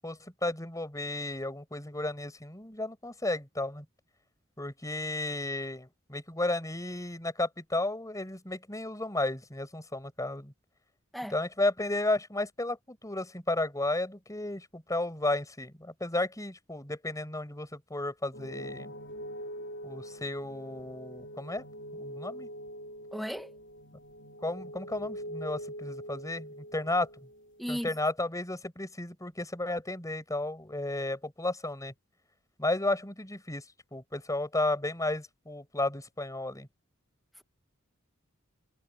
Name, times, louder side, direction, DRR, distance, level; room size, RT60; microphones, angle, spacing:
voice 1, 0.0-3.8 4.6-10.5 11.3-18.9 19.8-21.6 21.9-22.5 24.4-27.1 27.7-31.9 32.6-33.6 33.9-36.7, left 2 dB, 15° left, 8.0 m, -33 dB
sound 1, 18.3-28.0, equal, 60° left, 3.7 m, -44 dB
voice 2, 23.1-23.5 27.6-27.9 37.4-37.5, equal, ahead, 1.1 m, -35 dB
head